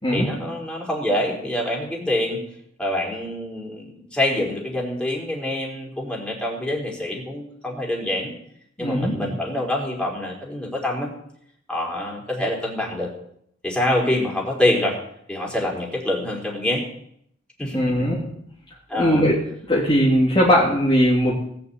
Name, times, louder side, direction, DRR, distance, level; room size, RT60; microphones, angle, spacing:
voice 1, 0.1-2.4 2.8-8.3 8.8-11.1 11.7-13.1 13.6-15.0 15.3-16.8 17.6-17.9 18.9-19.2, left 1 dB, 5° left, -2 dB, 4.4 m, -25 dB
voice 2, 8.8-9.2 17.7-18.2 18.9-19.4 19.7-21.3, equal, 25° left, -5 dB, 2.6 m, -19 dB
18.5 x 6.9 x 8.5 m, 0.71 s
head